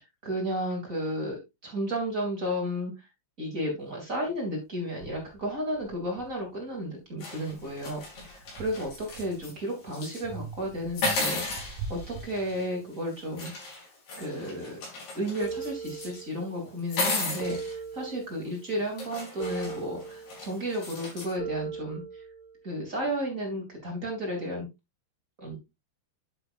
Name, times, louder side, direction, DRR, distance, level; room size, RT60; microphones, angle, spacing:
voice 1, 0.2-2.9 3.4-8.0 8.3-13.9 14.2-14.8 15.1-22.0 22.6-24.7 25.4-25.6, equal, 20° right, -1 dB, 3.3 m, -33 dB
sound 1, 4.2-4.3 5.0-6.8 7.3-9.6 10.2-13.0, right 5 dB, 70° right, 2.9 m, -44 dB
sound 2, 7.2-9.5 9.9-10.2 11.0-12.7 13.4-16.2 16.8-17.7 18.5-18.6 19.0-21.3, left 3 dB, 70° left, 6.6 m, -35 dB
sound 3, 15.4-16.6 17.4-18.6 19.4-20.6 21.4-22.6, right 6 dB, 55° right, 2.2 m, -38 dB
11.0 x 7.5 x 2.6 m, 0.22 s
omnidirectional pair, 4.6 m